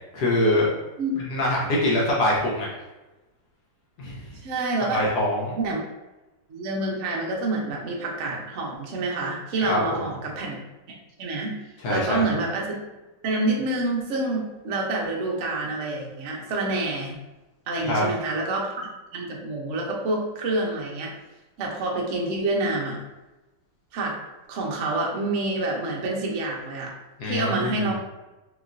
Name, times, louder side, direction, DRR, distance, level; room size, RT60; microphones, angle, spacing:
voice 1, 0.1-0.7 1.3-2.7 4.0-4.4 4.9-5.6 9.6-9.8 11.8-12.2 17.8-18.1 27.2-27.9, left 1 dB, 65° left, -4 dB, 1.1 m, -24 dB
voice 2, 4.4-5.0 5.6-5.8 6.5-10.6 10.9-11.5 11.9-12.8 13.2-17.1 17.7-21.1 21.6-23.0 23.9-24.2 24.5-26.9 27.2-27.9, right 2 dB, 70° right, -2 dB, 0.6 m, -27 dB
3.0 x 2.9 x 2.5 m, 1.1 s
omnidirectional pair, 2.1 m